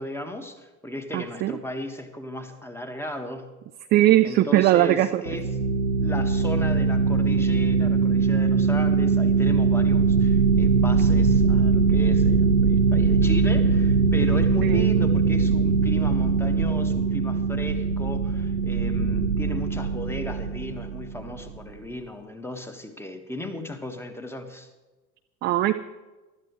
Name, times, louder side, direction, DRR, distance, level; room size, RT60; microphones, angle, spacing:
voice 1, 0.0-3.5 4.2-5.5 6.0-24.7, left 1 dB, 5° left, 6 dB, 1.7 m, -36 dB
voice 2, 1.1-1.5 3.9-5.1 14.6-15.1 25.4-25.7, right 14 dB, 20° right, 8 dB, 0.4 m, -20 dB
sound 1, 5.3-21.5, right 4 dB, 85° right, 1.0 m, -21 dB
24.0 x 12.5 x 3.2 m, 1.2 s
figure-of-eight pair, 80°, 50 cm